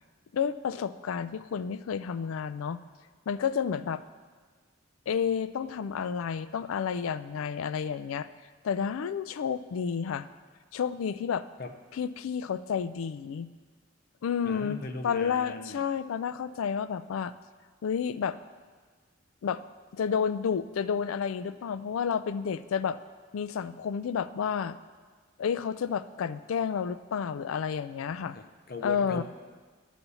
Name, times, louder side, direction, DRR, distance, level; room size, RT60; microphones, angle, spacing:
voice 1, 0.3-2.8 3.3-4.0 5.1-8.3 8.6-10.3 10.7-11.4 11.9-13.5 14.2-17.3 17.8-18.4 19.4-19.6 19.9-23.0 23.3-24.8 25.4-28.4 28.8-29.2, left 7 dB, 85° left, 14 dB, 0.4 m, -30 dB
voice 2, 14.5-15.8 28.3-29.2, left 2 dB, 50° left, 6 dB, 0.6 m, -39 dB
11.0 x 4.1 x 6.9 m, 1.5 s
head